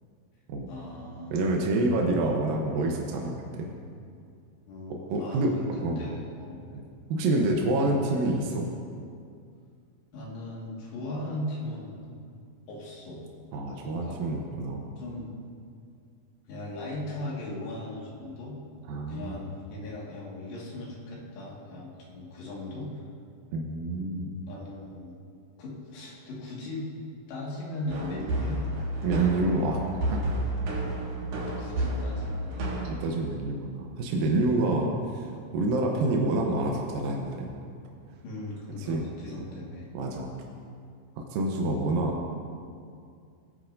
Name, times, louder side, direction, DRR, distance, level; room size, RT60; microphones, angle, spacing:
voice 1, 0.7-1.6 4.7-6.6 10.1-12.0 12.7-13.3 13.8-14.2 15.0-15.3 16.5-18.6 19.1-22.9 24.5-25.2 25.6-26.9 27.3-28.6 31.3-32.7 38.2-39.9, left 1 dB, 70° left, -5 dB, 3.9 m, -38 dB
voice 2, 1.3-3.7 4.9-6.0 6.7-6.8 7.1-8.7 13.5-14.8 18.9-19.4 23.5-24.3 29.0-29.8 30.1-30.2 32.8-34.9 35.1-35.3 35.5-37.5 38.9-39.0 39.9-40.3 41.2-42.1, right 2 dB, 80° right, 0 dB, 2.1 m, -27 dB
sound 1, 27.9-32.9, right 1 dB, 60° right, 3.1 m, -31 dB
19.0 x 9.4 x 2.6 m, 2.3 s
omnidirectional pair, 5.2 m